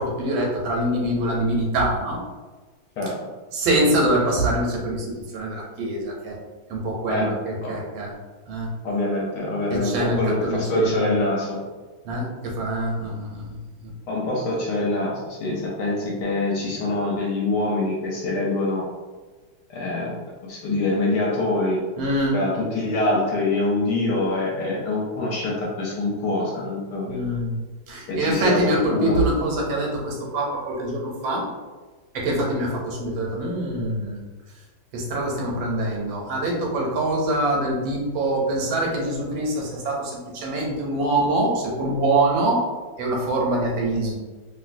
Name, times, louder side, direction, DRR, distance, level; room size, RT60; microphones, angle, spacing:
voice 1, 0.0-2.2 3.5-6.4 6.7-8.1 8.5-8.7 9.7-11.1 12.0-13.6 13.8-13.9 22.0-22.4 27.0-27.6 27.9-31.5 32.1-34.2 34.9-42.6 43.0-44.2, right 1 dB, 90° right, -2 dB, 1.5 m, -24 dB
voice 2, 7.1-7.8 8.8-11.6 14.1-18.8 19.7-20.1 20.5-21.8 22.3-27.2 28.1-29.2, left 2 dB, 70° left, -3 dB, 1.1 m, -25 dB
3.1 x 2.6 x 2.5 m, 1.3 s
omnidirectional pair, 2.1 m